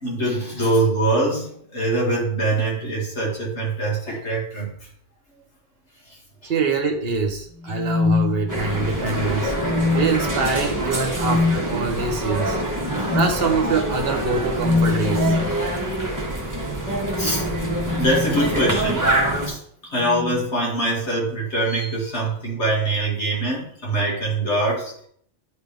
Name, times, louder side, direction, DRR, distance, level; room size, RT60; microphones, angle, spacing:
voice 1, 0.0-4.7 6.4-6.5 9.0-9.1 13.0-13.2 15.8-15.9 17.2-17.4 18.0-19.1 19.5-19.6 19.9-25.1, right 2 dB, 70° left, -4 dB, 2.4 m, -23 dB
voice 2, 6.4-9.5 9.9-12.6 13.1-15.3 17.2-17.3, right 4 dB, 55° right, 4 dB, 1.2 m, -24 dB
sound 1, 7.6-8.9 9.5-10.3 11.1-11.6 13.0-13.4 14.5-15.6 17.1-18.9 20.0-20.4 21.7-21.9, left 4 dB, 15° left, 1.4 m, -24 dB
sound 2, 8.5-19.5, right 1 dB, 15° right, 1.2 m, -25 dB
10.0 x 3.8 x 3.4 m, 0.63 s
omnidirectional pair, 1.2 m